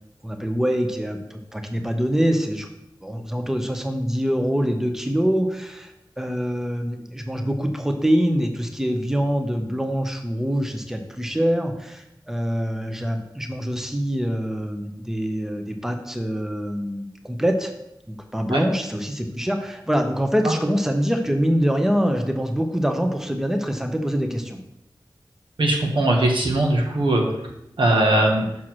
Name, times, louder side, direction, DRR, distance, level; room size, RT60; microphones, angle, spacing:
voice 1, 0.2-2.7 3.0-17.7 18.1-24.6, equal, 5° right, 4 dB, 0.8 m, -24 dB
voice 2, 25.6-27.2 27.8-28.5, right 1 dB, 85° right, 0 dB, 1.5 m, -20 dB
6.2 x 4.6 x 6.0 m, 0.84 s
wide cardioid pair, 80°, 8 cm